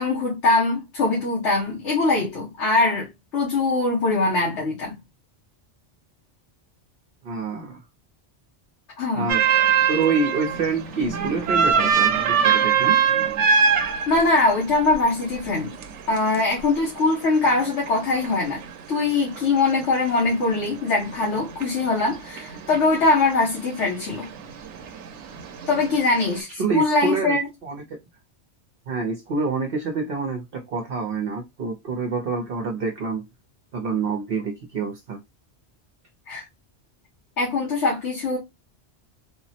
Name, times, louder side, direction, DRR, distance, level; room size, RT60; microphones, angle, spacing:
voice 1, 0.0-5.0 9.0-9.3 14.1-15.7 16.1-18.6 18.9-24.3 25.7-27.5 36.3-36.4 37.4-38.4, left 3 dB, 80° left, 1.3 m, -22 dB
voice 2, 7.2-7.8 9.1-9.4 9.9-13.0 26.6-28.0 28.9-33.2 33.7-35.2, right 4 dB, 60° right, 0.8 m, -27 dB
sound 1, 9.3-26.4, right 7 dB, 85° right, 0.9 m, -25 dB
3.5 x 2.0 x 2.7 m
omnidirectional pair, 1.2 m